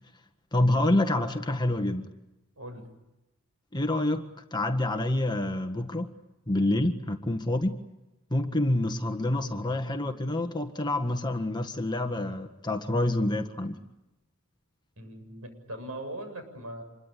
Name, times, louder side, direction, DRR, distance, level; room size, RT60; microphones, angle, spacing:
voice 1, 0.5-2.1 3.7-4.3 4.5-6.1 6.5-7.8 8.3-13.8, left 1 dB, 20° left, 6 dB, 1.6 m, -27 dB
voice 2, 2.6-2.9 15.0-16.8, right 1 dB, 75° right, 6 dB, 7.5 m, -40 dB
27.0 x 22.5 x 8.5 m, 0.95 s
head